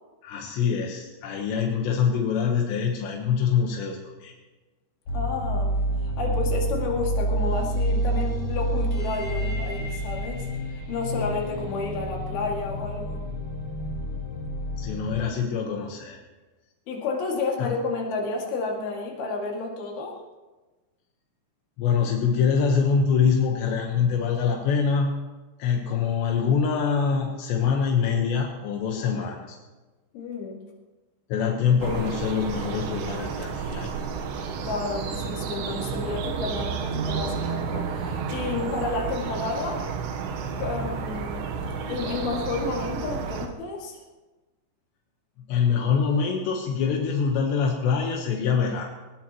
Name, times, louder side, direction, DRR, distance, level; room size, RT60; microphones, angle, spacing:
voice 1, 0.2-4.3 14.8-16.2 17.6-17.7 21.8-25.1 25.6-29.6 31.3-33.9 45.4-48.8, left 6 dB, 85° left, 1 dB, 3.5 m, -24 dB
voice 2, 5.1-5.7 6.0-10.5 10.9-13.2 16.9-20.2 30.1-30.6 34.6-39.8 40.6-41.5 41.9-44.0, left 3 dB, 65° left, -1 dB, 4.2 m, -31 dB
sound 1, 5.1-15.1, right 1 dB, 45° left, 6.1 m, -28 dB
sound 2, 31.8-43.5, right 6 dB, 85° right, 3.4 m, -31 dB
21.0 x 19.5 x 3.1 m, 1.2 s
omnidirectional pair, 4.9 m